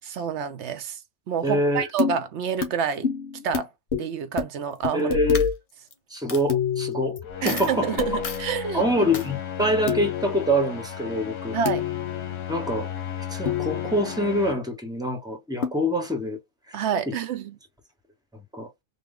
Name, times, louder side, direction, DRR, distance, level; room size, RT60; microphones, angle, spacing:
voice 1, 0.0-1.0 1.3-3.1 3.4-3.7 4.0-5.2 7.4-9.0 11.5-11.9 16.7-17.6, right 7 dB, 70° right, 1.0 m, -28 dB
voice 2, 1.4-1.9 4.9-5.5 6.1-7.2 7.4-7.9 8.7-11.6 12.5-12.9 13.2-16.4 16.7-16.8 17.1-17.2 18.3-18.7, equal, 5° right, 1.0 m, -25 dB
sound 1, 2.0-2.2 2.6-2.7 3.0-3.7 3.9-4.1 4.4-4.5 4.8-5.6 6.5-7.4 8.0-9.0 9.9-10.6 11.7-12.5 13.5-14.3 15.6-15.7, left 6 dB, 60° left, 1.2 m, -27 dB
Coin (dropping), 4.7-5.0 5.3-5.9 6.3-6.4 7.2-7.3 7.4-7.7 8.2-8.5 9.1-9.3, left 5 dB, 40° left, 0.5 m, -34 dB
sound 2, 7.2-14.5, left 9 dB, 90° left, 1.1 m, -35 dB
3.7 x 2.2 x 3.7 m
omnidirectional pair, 1.3 m